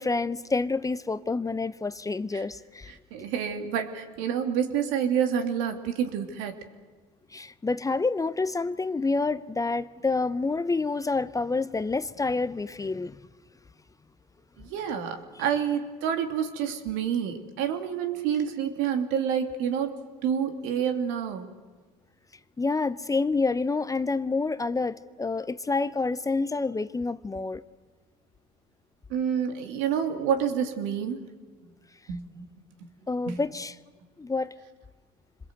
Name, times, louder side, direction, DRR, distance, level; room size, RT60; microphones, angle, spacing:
voice 1, 0.0-2.9 7.3-13.2 22.6-27.6 33.1-33.7 34.2-34.5, left 3 dB, 15° left, 0.7 m, -28 dB
voice 2, 2.9-6.5 14.6-20.0 20.2-21.5 29.1-31.3 32.1-32.5 33.3-33.4, right 8 dB, 75° right, 2.6 m, -28 dB
26.5 x 21.5 x 8.0 m
supercardioid pair, 80°, 20 cm